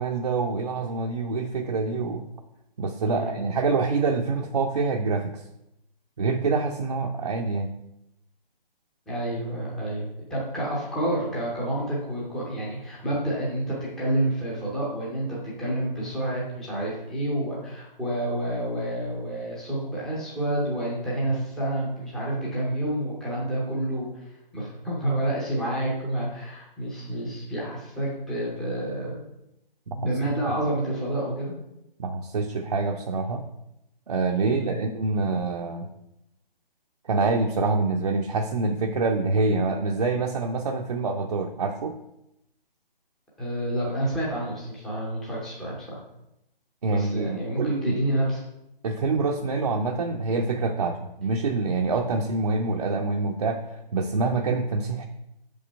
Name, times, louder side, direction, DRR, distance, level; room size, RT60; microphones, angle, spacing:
voice 1, 0.0-2.2 2.8-5.3 6.2-7.7 29.9-30.1 32.0-33.4 34.1-35.9 37.1-42.0 46.8-48.0 48.8-55.1, right 3 dB, 40° right, 2 dB, 0.5 m, -26 dB
voice 2, 9.1-29.2 29.9-31.5 34.4-34.7 43.4-46.0 46.9-48.4, right 1 dB, ahead, -6 dB, 0.6 m, -29 dB
6.5 x 5.2 x 4.4 m, 0.86 s
figure-of-eight pair, 150°, 29 cm